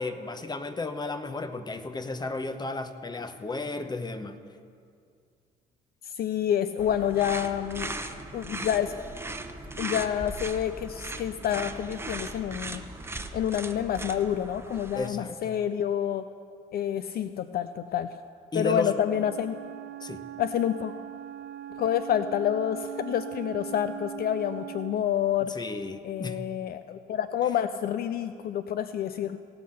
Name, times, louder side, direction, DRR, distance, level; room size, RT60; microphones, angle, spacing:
voice 1, 0.0-4.3 14.9-15.6 18.5-18.9 20.0-20.2 25.5-26.4, left 3 dB, 20° left, 9 dB, 1.0 m, -33 dB
voice 2, 6.0-7.9 8.3-8.9 9.8-12.8 13.3-16.2 16.7-18.1 18.5-19.6 20.4-20.9 21.7-25.5 26.0-29.4, left 10 dB, 55° left, 12 dB, 0.5 m, -28 dB
sound 1, 6.8-15.1, right 2 dB, 15° right, 0.9 m, -38 dB
Wind instrument woodwind instrument, 19.0-25.1, right 15 dB, 65° right, 0.7 m, -40 dB
17.5 x 5.8 x 6.6 m, 2.3 s
hypercardioid pair, 60°, 18 cm